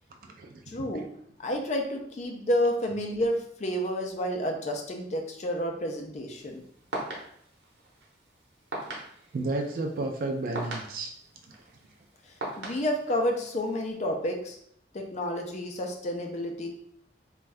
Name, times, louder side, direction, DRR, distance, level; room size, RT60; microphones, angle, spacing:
voice 1, 0.7-1.1 1.4-6.6 12.6-14.6 14.9-16.7, equal, 40° left, 3 dB, 0.4 m, -30 dB
sound 1, 6.4-13.9, right 2 dB, 85° right, 0.9 m, -41 dB
voice 2, 9.3-11.1, right 2 dB, 50° right, 2 dB, 0.3 m, -31 dB
2.6 x 2.3 x 3.2 m, 0.68 s
head